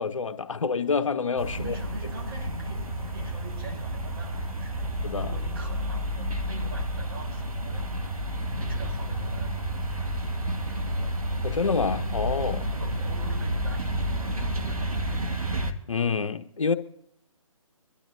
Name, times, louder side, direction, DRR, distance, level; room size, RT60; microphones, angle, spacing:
voice 1, 0.0-1.7 5.0-5.3 11.4-12.7 15.9-16.7, left 5 dB, 65° left, 1.1 m, -27 dB
voice 2, 1.4-4.9 5.2-8.1 8.5-10.4 10.7-11.3 12.7-15.2, right 2 dB, 40° right, 3.8 m, -43 dB
sound 1, 1.4-15.7, equal, 85° right, 1.8 m, -30 dB
24.0 x 12.0 x 2.6 m
figure-of-eight pair, 145°, 18 cm